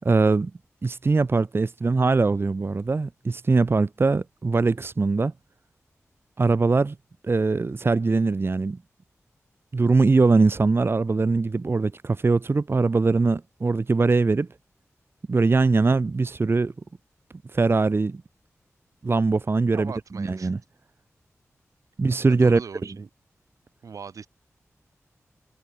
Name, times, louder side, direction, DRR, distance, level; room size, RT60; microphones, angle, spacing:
voice 1, 0.0-0.5 0.8-5.3 6.4-7.0 7.2-8.8 9.7-14.5 15.3-16.7 17.5-18.2 19.0-20.6 22.0-22.6, right 3 dB, 45° right, 0.6 m, -21 dB
voice 2, 19.7-20.5 22.3-23.1 23.8-24.3, right 6 dB, 85° right, 2.3 m, -39 dB
cardioid pair, 45°, 6 cm